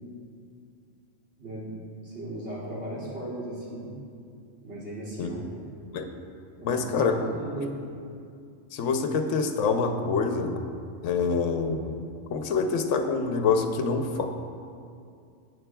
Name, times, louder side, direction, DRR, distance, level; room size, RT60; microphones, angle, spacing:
voice 1, 1.4-3.9 4.6-5.6 6.6-7.7, right 1 dB, 55° right, -8 dB, 2.8 m, -37 dB
voice 2, 6.6-7.2 8.7-10.7 11.0-12.0 12.3-14.2, left 5 dB, 70° left, 6 dB, 1.0 m, -26 dB
14.0 x 8.0 x 2.3 m, 2.4 s
omnidirectional pair, 1.4 m